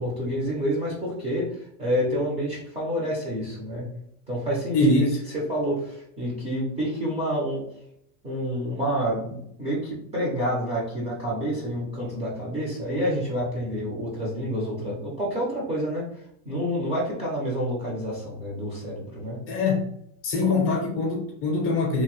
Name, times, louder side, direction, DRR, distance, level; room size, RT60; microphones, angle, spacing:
voice 1, 0.0-1.5 1.8-3.9 4.3-4.8 5.5-7.6 8.2-16.0 16.4-19.4 20.5-20.6, equal, 15° right, -5 dB, 0.5 m, -28 dB
voice 2, 4.7-5.2 19.5-19.9 20.2-22.0, left 2 dB, 30° left, 0 dB, 0.6 m, -23 dB
2.9 x 2.1 x 3.0 m, 0.71 s
supercardioid pair, 165°, 42 cm